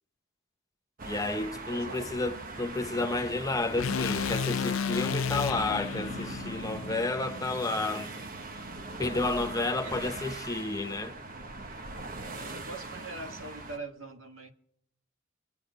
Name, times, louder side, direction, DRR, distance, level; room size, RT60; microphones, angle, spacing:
sound 1, 1.0-13.8, right 2 dB, 45° right, 1.1 m, -40 dB
voice 1, 1.1-8.1 9.0-11.2, left 2 dB, 15° left, 0.8 m, -31 dB
voice 2, 1.7-2.0 9.8-9.9 12.2-14.5, right 3 dB, 80° right, 1.6 m, -43 dB
sound 2, 3.8-8.0, left 6 dB, 90° left, 0.5 m, -33 dB
25.0 x 8.6 x 5.1 m
head